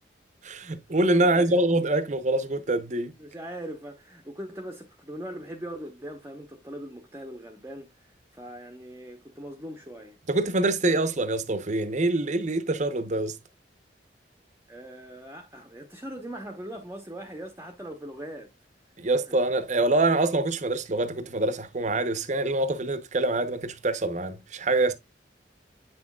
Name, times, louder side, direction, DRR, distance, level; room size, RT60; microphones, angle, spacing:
voice 1, 0.4-3.2 10.3-13.4 19.0-24.9, right 2 dB, 40° right, 0.8 m, -25 dB
voice 2, 1.2-1.6 3.2-10.2 14.7-18.5 19.3-19.4, right 1 dB, 15° right, 0.9 m, -40 dB
8.0 x 6.1 x 2.3 m
head